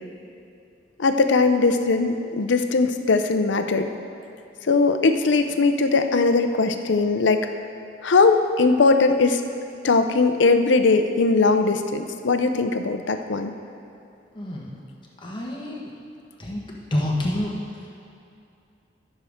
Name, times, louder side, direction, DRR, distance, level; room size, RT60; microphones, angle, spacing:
voice 1, 1.0-3.9 4.6-7.5 8.0-9.4 9.8-13.5, left 3 dB, 80° left, 7 dB, 0.6 m, -20 dB
voice 2, 14.3-14.7 15.2-15.9 16.4-16.6 16.9-17.9, left 1 dB, 25° left, -3 dB, 1.2 m, -28 dB
14.0 x 6.5 x 3.6 m, 2.6 s
head